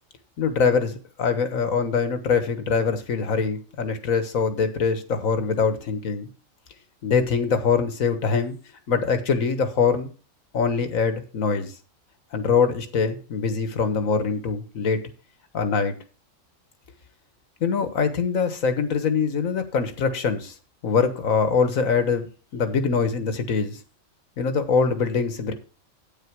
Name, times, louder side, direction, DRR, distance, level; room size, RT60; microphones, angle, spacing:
voice 1, 0.4-6.3 7.0-8.6 8.9-10.1 10.5-11.7 12.3-15.0 15.5-15.9 17.6-20.5 20.8-22.3 22.5-23.8 24.4-25.5, left 5 dB, 85° left, 10 dB, 1.7 m, -23 dB
9.0 x 8.8 x 4.7 m, 0.36 s
omnidirectional pair, 1.4 m